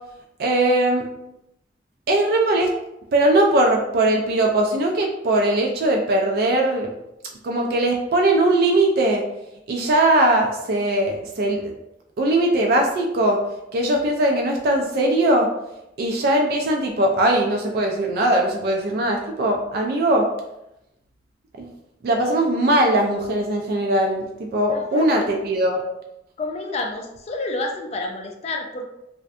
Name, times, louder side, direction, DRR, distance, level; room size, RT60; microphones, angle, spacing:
voice 1, 0.4-1.0 2.1-2.7 3.1-6.9 7.4-9.3 9.7-11.7 12.2-13.4 13.7-15.5 16.0-20.3 21.6-21.7 22.0-25.8, right 1 dB, 60° right, 1 dB, 0.3 m, -20 dB
voice 2, 24.7-25.3 26.4-28.9, left 2 dB, 35° left, 2 dB, 0.3 m, -29 dB
2.5 x 2.1 x 2.4 m, 0.86 s
head